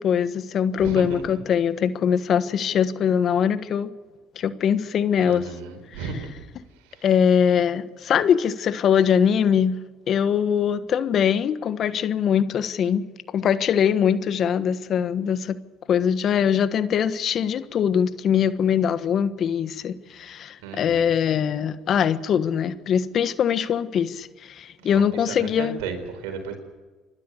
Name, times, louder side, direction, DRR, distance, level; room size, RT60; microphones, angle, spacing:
voice 1, 0.0-3.9 4.3-5.5 5.9-6.0 7.0-9.8 10.1-13.0 13.3-15.6 15.9-25.8, left 8 dB, 55° left, 13 dB, 1.3 m, -22 dB
voice 2, 0.8-1.4 5.2-6.4 6.8-7.1 20.6-21.1 24.8-26.6, right 5 dB, 85° right, 5 dB, 4.4 m, -35 dB
27.5 x 12.5 x 8.3 m, 1.3 s
supercardioid pair, 75°, 0 cm